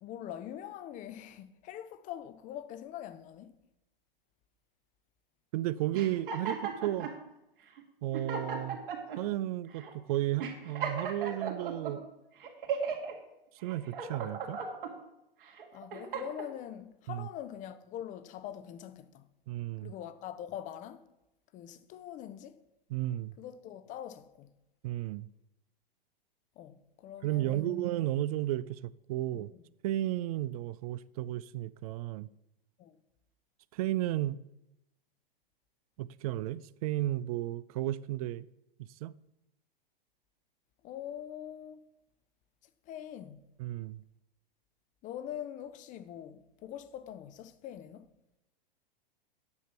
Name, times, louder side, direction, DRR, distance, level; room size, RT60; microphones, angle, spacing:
voice 1, 0.0-3.5 15.7-19.3 19.8-21.0 21.5-22.6 23.4-24.5 26.6-27.9 29.3-29.4 32.8-32.9 40.8-41.8 42.9-43.5 45.0-48.1, left 10 dB, 25° left, 0.7 m, -43 dB
voice 2, 5.5-7.1 8.0-8.8 9.2-12.1 13.6-14.6 17.1-17.3 19.5-19.9 22.9-23.3 24.8-25.3 27.2-29.5 29.8-32.3 33.7-34.4 36.0-38.5 39.0-39.1 43.6-44.0, right 14 dB, 40° right, 0.4 m, -33 dB
sound 1, 5.9-7.2 7.8-7.9 8.1-9.2 9.8-9.9 10.4-11.9 12.4-13.1 13.6-14.9 15.5-16.5, right 6 dB, 65° right, 2.3 m, -36 dB
9.6 x 6.6 x 5.8 m
figure-of-eight pair, 105°, 29 cm